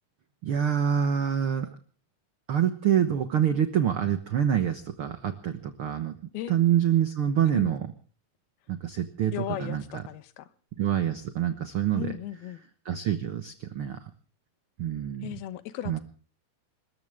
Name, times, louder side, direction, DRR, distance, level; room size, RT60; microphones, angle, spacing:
voice 1, 0.4-1.7 2.5-6.1 6.5-7.9 8.7-9.3 9.6-9.8 10.8-12.2 12.8-14.1 14.8-15.4 15.9-16.0, right 9 dB, 85° right, 1.2 m, -26 dB
voice 2, 9.3-10.5 11.9-12.6 15.2-16.0, left 13 dB, 90° left, 3.0 m, -36 dB
28.5 x 14.0 x 3.5 m
omnidirectional pair, 4.3 m